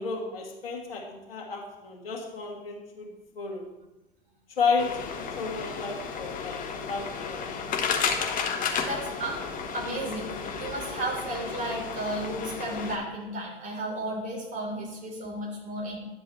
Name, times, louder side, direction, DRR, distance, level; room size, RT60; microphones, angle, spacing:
voice 1, 0.0-3.1 3.4-3.7 4.6-6.6 6.9-7.5, left 4 dB, 75° left, -1 dB, 2.1 m, -32 dB
sound 1, 4.8-13.0, left 6 dB, 30° left, 1.2 m, -32 dB
voice 2, 8.6-9.4 9.7-16.0, right 1 dB, 25° right, -2 dB, 3.5 m, -34 dB
10.5 x 7.5 x 3.1 m, 1.0 s
hypercardioid pair, 100°, 29 cm